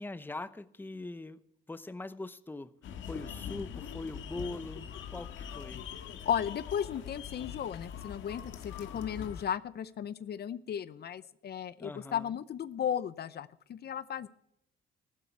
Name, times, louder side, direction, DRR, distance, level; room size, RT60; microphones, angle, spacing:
voice 1, 0.0-1.4 1.7-2.7 3.0-5.8 11.8-12.3, left 2 dB, 10° left, 14 dB, 0.7 m, -42 dB
sound 1, 2.8-9.4, left 8 dB, 75° left, 1.6 m, -43 dB
voice 2, 6.2-14.3, left 9 dB, 55° left, 15 dB, 0.7 m, -35 dB
14.5 x 12.5 x 4.6 m, 0.77 s
cardioid pair, 90°, 20 cm